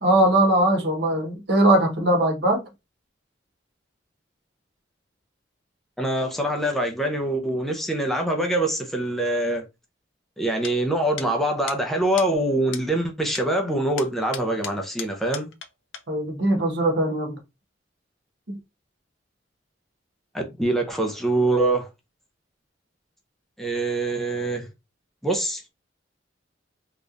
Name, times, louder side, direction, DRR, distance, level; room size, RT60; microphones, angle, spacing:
voice 1, 0.0-2.7 16.1-17.4 18.5-18.6, right 1 dB, 60° right, 1.2 m, -20 dB
voice 2, 6.0-9.6 10.4-15.5 20.3-21.9 23.6-24.7 25.2-25.6, right 1 dB, ahead, 0.7 m, -24 dB
sound 1, 10.6-10.7 11.2-11.3 11.7-11.8 12.2-12.3 12.7-12.8 13.3-13.5 14.0-15.7 15.9-16.0, left 9 dB, 90° left, 0.6 m, -35 dB
3.6 x 3.0 x 2.5 m
head